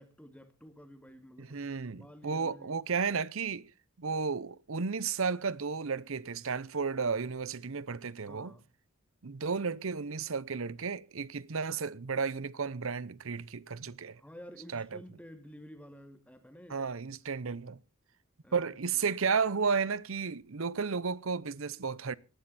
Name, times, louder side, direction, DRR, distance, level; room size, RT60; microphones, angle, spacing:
voice 1, 0.0-1.6 1.9-2.8 8.3-8.7 14.2-17.1 18.4-19.1, equal, 5° left, 2.3 m, -51 dB
voice 2, 1.4-3.7 4.0-8.5 9.2-14.2 14.7-15.0 16.7-17.8 18.5-22.2, right 5 dB, 65° right, 0.8 m, -33 dB
18.5 x 12.5 x 4.2 m
head